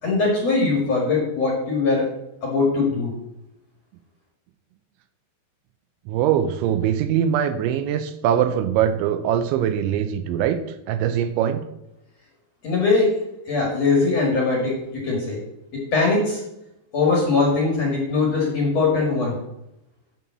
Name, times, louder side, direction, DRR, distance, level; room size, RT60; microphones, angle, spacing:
voice 1, 0.0-2.1 2.4-3.1 12.6-13.1 13.5-14.8 15.0-15.4 15.7-16.4 16.9-19.4, left 3 dB, 50° left, -2 dB, 2.3 m, -21 dB
voice 2, 6.1-10.6 10.9-11.6, right 9 dB, 85° right, 10 dB, 2.9 m, -22 dB
8.5 x 5.5 x 7.2 m, 0.86 s
omnidirectional pair, 5.5 m